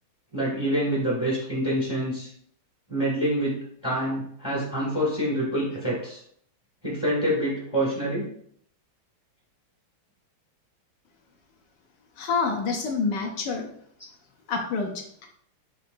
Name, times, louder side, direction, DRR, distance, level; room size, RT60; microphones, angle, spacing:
voice 1, 0.3-2.3 2.9-6.2 6.8-8.3, right 1 dB, 15° left, -8 dB, 0.9 m, -26 dB
voice 2, 12.2-13.7 14.5-15.3, left 4 dB, 75° left, 2 dB, 1.0 m, -27 dB
4.8 x 3.0 x 2.5 m, 0.65 s
omnidirectional pair, 2.4 m